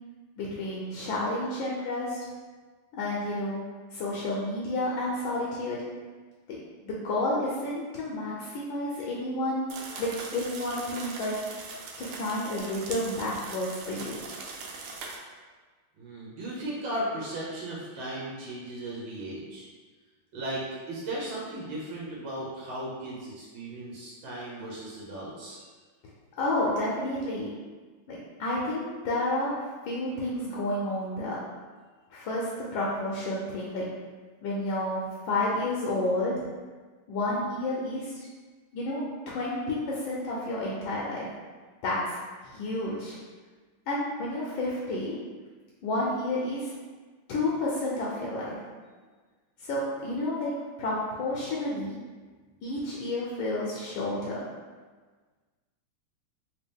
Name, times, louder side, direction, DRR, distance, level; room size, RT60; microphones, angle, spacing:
voice 1, 0.4-2.2 2.9-3.6 3.9-5.8 6.5-6.6 6.8-9.6 10.0-11.3 12.0-14.2 26.4-27.5 28.1-31.4 32.1-33.8 34.4-36.3 37.1-38.3 38.7-41.3 41.8-42.2 42.4-43.2 43.9-45.1 45.8-46.7 47.3-48.6 49.6-50.5 50.8-52.0 52.6-54.4, left 1 dB, 75° left, -5 dB, 1.3 m, -30 dB
sound 1, 9.7-15.2, right 4 dB, 85° right, 1.5 m, -41 dB
voice 2, 16.0-19.7 20.3-25.7, right 1 dB, 65° right, -5 dB, 1.5 m, -36 dB
3.4 x 2.9 x 3.5 m, 1.4 s
omnidirectional pair, 2.4 m